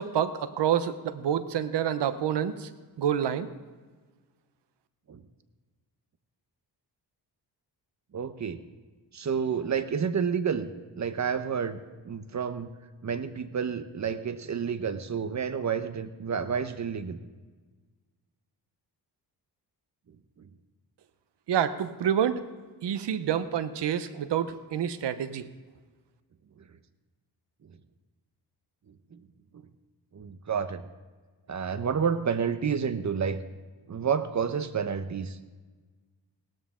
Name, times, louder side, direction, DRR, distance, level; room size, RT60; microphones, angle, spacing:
voice 1, 0.0-2.7 3.0-3.5 21.5-22.4 22.8-25.5, right 9 dB, 75° right, 12 dB, 1.0 m, -28 dB
voice 2, 8.1-8.6 9.1-10.7 11.0-11.8 12.0-12.7 13.0-17.2 20.4-20.5 29.1-29.2 29.5-29.6 30.1-30.8 31.5-33.4 33.9-35.4, right 6 dB, 40° right, 11 dB, 0.9 m, -30 dB
17.0 x 13.0 x 3.8 m, 1.4 s
cardioid pair, 85°, 42 cm